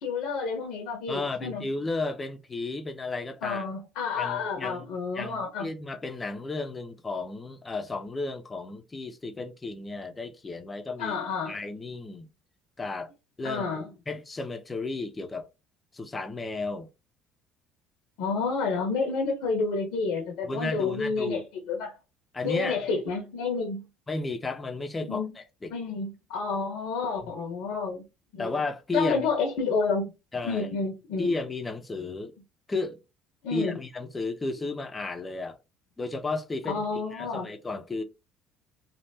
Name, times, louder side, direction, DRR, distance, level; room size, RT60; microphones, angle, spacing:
voice 1, 0.0-1.6 3.4-5.7 11.0-11.6 13.4-13.9 18.2-22.0 22.4-23.8 25.1-25.3 25.7-28.1 28.3-28.5 28.9-30.1 30.4-31.3 33.4-33.8 36.7-37.5, left 4 dB, 75° left, 0.9 m, -30 dB
voice 2, 1.1-3.6 4.2-4.8 5.1-11.2 11.5-12.3 12.8-13.1 13.4-13.6 14.1-15.5 15.9-16.9 20.4-21.4 22.3-22.8 24.1-25.7 27.2-27.3 28.4-29.2 30.3-30.7 31.2-32.3 32.7-33.0 33.5-35.6 36.0-38.0, left 3 dB, 25° left, 0.7 m, -33 dB
3.4 x 2.4 x 2.7 m
supercardioid pair, 80°, 0 cm